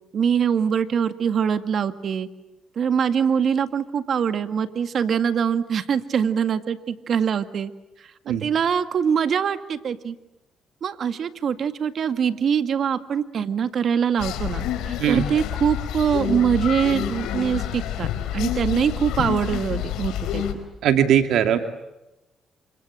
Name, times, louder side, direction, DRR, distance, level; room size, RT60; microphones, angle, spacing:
voice 1, 0.1-2.3 2.8-7.7 8.3-10.2 10.8-20.4, right 7 dB, 60° right, 10 dB, 1.9 m, -23 dB
sound 1, 14.2-20.5, left 10 dB, 90° left, 4.0 m, -28 dB
voice 2, 20.8-21.6, right 9 dB, 80° right, 7 dB, 2.5 m, -19 dB
29.0 x 26.0 x 7.6 m, 0.94 s
cardioid pair, 90°, 0 cm